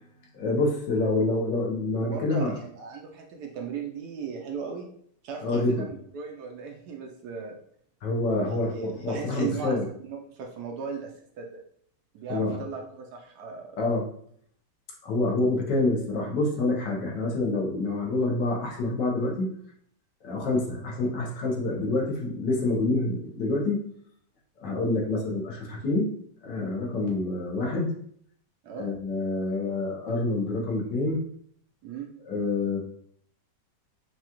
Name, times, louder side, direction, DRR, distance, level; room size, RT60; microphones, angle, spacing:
voice 1, 0.3-2.5 5.4-5.8 8.0-9.8 12.3-12.6 13.8-14.0 15.0-19.5 20.2-23.8 24.6-26.1 26.4-27.9 28.7-31.2 32.3-32.8, left 2 dB, 70° left, -2 dB, 1.5 m, -27 dB
voice 2, 2.0-4.9 5.2-7.5 8.4-9.8 10.1-11.1 11.4-11.6 12.1-13.8 28.6-28.9 31.8-32.1, right 5 dB, 70° right, 1 dB, 1.0 m, -37 dB
6.0 x 2.4 x 2.9 m, 0.64 s
omnidirectional pair, 2.0 m